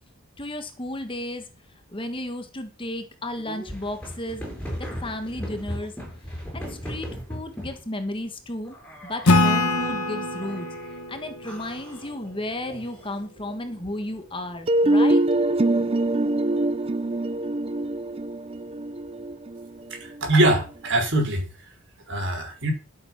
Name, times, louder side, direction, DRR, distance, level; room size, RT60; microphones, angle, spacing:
voice 1, 0.4-1.4 1.9-4.4 4.8-5.9 6.5-8.8 9.0-10.7 11.1-15.2, left 1 dB, 25° left, 7 dB, 1.4 m, -33 dB
sound 1, 3.4-7.8 8.6-9.9 10.4-11.0 11.4-13.3, equal, 5° left, 6.4 m, -38 dB
Acoustic guitar / Strum, 9.3-12.7, left 2 dB, 85° left, 1.4 m, -24 dB
sound 2, 14.7-20.5, right 1 dB, 25° right, 0.5 m, -23 dB
voice 2, 19.9-21.5 22.1-22.7, right 1 dB, 55° right, 2 dB, 5.4 m, -22 dB
12.5 x 8.1 x 5.9 m, 0.33 s
head